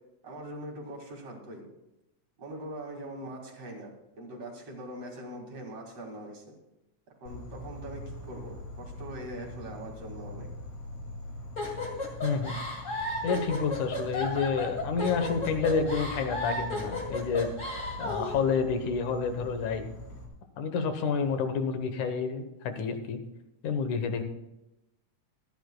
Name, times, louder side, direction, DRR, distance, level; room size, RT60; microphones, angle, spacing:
voice 1, 0.2-1.7 2.4-6.6 7.2-10.5, right 1 dB, 55° right, 1 dB, 3.1 m, -42 dB
Insect, 7.3-20.3, left 1 dB, 65° left, 3.4 m, -43 dB
sound 1, 11.6-18.4, left 2 dB, 30° left, 2.3 m, -34 dB
voice 2, 12.2-12.6 13.2-17.5 18.0-19.8 20.6-23.2 23.6-24.2, left 5 dB, 80° left, 8 dB, 2.6 m, -29 dB
25.5 x 10.0 x 2.3 m, 0.92 s
omnidirectional pair, 3.4 m